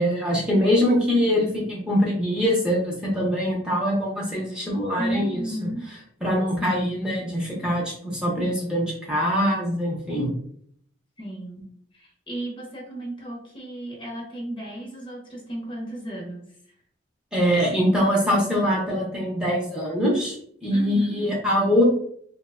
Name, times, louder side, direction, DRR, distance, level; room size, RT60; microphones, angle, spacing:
voice 1, 0.0-5.7 6.2-10.3 17.3-21.8, equal, 5° right, -4 dB, 0.7 m, -23 dB
voice 2, 5.0-5.9 6.6-7.0 11.2-11.7 11.9-16.5 20.7-21.3, right 1 dB, 25° left, -1 dB, 0.7 m, -34 dB
2.9 x 2.1 x 3.5 m, 0.63 s
head